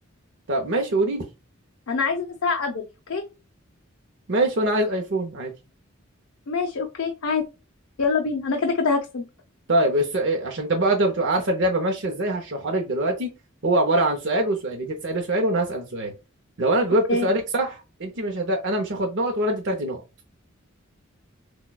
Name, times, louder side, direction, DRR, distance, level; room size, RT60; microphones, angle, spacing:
voice 1, 0.5-1.2 4.3-5.5 9.7-13.3 13.6-16.1 16.6-20.0, right 1 dB, 60° right, 2 dB, 0.7 m, -23 dB
voice 2, 1.9-3.2 6.5-7.4 8.0-9.2 17.1-17.3, left 4 dB, 80° left, 3 dB, 0.6 m, -25 dB
6.0 x 2.3 x 2.2 m, 0.28 s
head